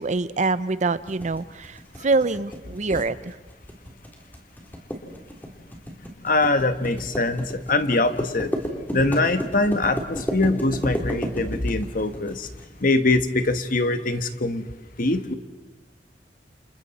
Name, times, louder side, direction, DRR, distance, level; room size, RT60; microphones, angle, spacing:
voice 1, 0.0-3.4, right 3 dB, 45° right, 14 dB, 0.7 m, -25 dB
sound 1, 1.1-12.7, equal, 10° left, 3.3 m, -32 dB
voice 2, 6.2-8.5 8.9-12.5 12.8-14.6 15.0-15.3, left 2 dB, 50° left, 9 dB, 1.3 m, -23 dB
29.5 x 28.0 x 4.2 m, 1.2 s
head